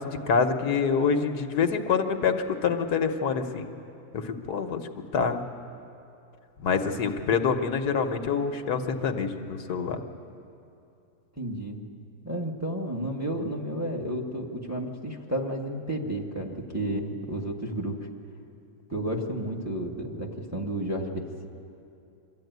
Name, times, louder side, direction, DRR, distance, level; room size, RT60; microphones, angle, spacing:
voice 1, 0.0-3.7 4.1-4.8 5.1-5.4 6.6-10.0, left 5 dB, 75° left, 6 dB, 1.5 m, -26 dB
voice 2, 11.4-11.8 12.2-18.1 18.9-21.5, right 1 dB, 10° right, -1 dB, 1.6 m, -32 dB
24.0 x 13.5 x 9.3 m, 2.7 s
omnidirectional pair, 1.7 m